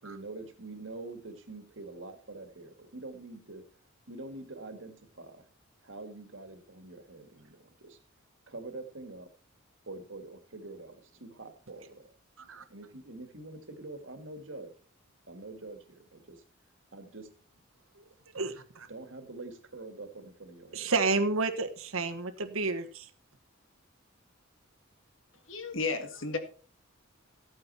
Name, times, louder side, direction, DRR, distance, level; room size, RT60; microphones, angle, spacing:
voice 1, 0.0-3.6 4.1-5.5 5.8-8.0 8.5-9.3 9.9-12.1 12.7-14.7 15.3-16.4 16.9-17.2 18.9-20.9, right 2 dB, 65° right, 8 dB, 1.9 m, -45 dB
voice 2, 18.0-18.9 20.7-23.1, right 3 dB, 85° right, 8 dB, 1.4 m, -31 dB
voice 3, 25.5-26.4, left 4 dB, 65° left, 8 dB, 1.9 m, -33 dB
14.5 x 8.7 x 4.3 m, 0.41 s
head